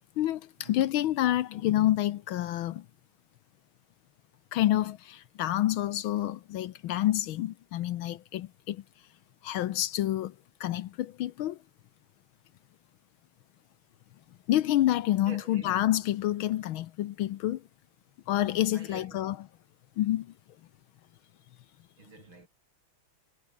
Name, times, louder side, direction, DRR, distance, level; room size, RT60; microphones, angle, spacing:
voice 1, 0.2-2.9 4.5-8.8 9.4-10.3 10.6-11.6 14.5-17.6 18.3-19.4 20.0-20.3, left 13 dB, 70° left, 1.5 m, -28 dB
voice 2, 15.3-15.7 18.7-19.2 22.0-22.5, right 3 dB, 60° right, 6.5 m, -48 dB
omnidirectional pair, 2.4 m